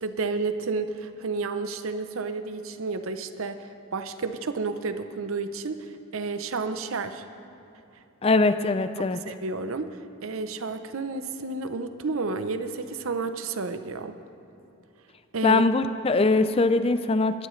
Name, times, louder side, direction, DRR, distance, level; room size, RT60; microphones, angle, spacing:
voice 1, 0.0-7.3 8.3-8.5 9.3-14.2 15.3-15.6, right 4 dB, 80° right, 10 dB, 0.7 m, -31 dB
voice 2, 8.2-9.2 15.4-17.5, left 3 dB, 25° left, 11 dB, 0.4 m, -22 dB
21.0 x 12.0 x 3.2 m, 2.7 s
head